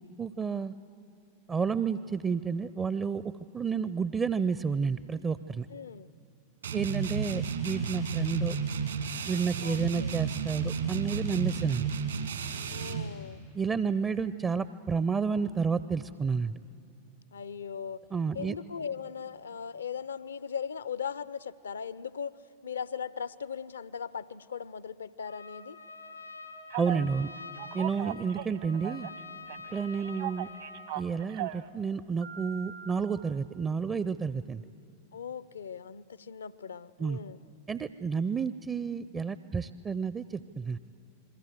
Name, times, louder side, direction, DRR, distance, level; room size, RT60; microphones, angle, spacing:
voice 1, 0.2-0.7 1.5-5.7 6.7-8.6 9.3-11.9 13.5-16.6 18.1-18.6 26.8-27.3 27.7-29.1 29.7-30.5 31.0-34.6 37.0-37.2 37.7-40.8, right 5 dB, 20° right, 15 dB, 0.5 m, -30 dB
voice 2, 5.7-6.1 9.6-10.1 12.7-13.4 17.3-18.0 18.3-22.4 22.6-25.8 28.0-28.3 35.1-37.4, left 7 dB, 70° left, 18 dB, 0.6 m, -39 dB
sound 1, 6.6-13.1, right 6 dB, 70° right, 2.2 m, -32 dB
Trumpet, 25.2-31.1, left 3 dB, 90° left, 2.3 m, -46 dB
Telephone, 26.7-27.1 27.6-29.2 29.5-31.7 32.2-32.9, right 14 dB, 55° right, 1.0 m, -38 dB
27.5 x 22.0 x 8.1 m, 2.7 s
figure-of-eight pair, 90°, 0 cm